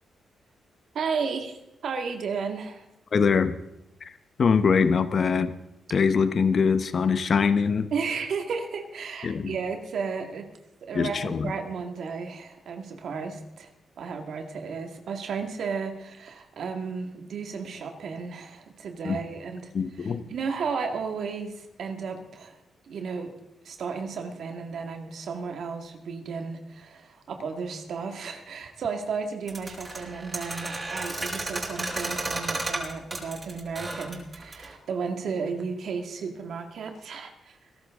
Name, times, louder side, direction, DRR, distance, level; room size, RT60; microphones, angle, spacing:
voice 1, 0.9-2.8 7.9-10.5 10.8-13.7 14.0-19.7 20.0-22.6 22.8-23.4 23.6-37.6, right 5 dB, 70° right, 5 dB, 2.0 m, -33 dB
voice 2, 3.1-3.6 4.0-4.1 4.4-5.5 5.9-7.9 9.2-9.6 10.9-11.5 19.0-19.2 19.7-20.2, left 5 dB, 55° left, 12 dB, 1.0 m, -23 dB
sound 1, 29.5-34.7, right 2 dB, 30° right, 5.8 m, -33 dB
21.0 x 12.0 x 3.7 m, 0.87 s
cardioid pair, 75°, 0 cm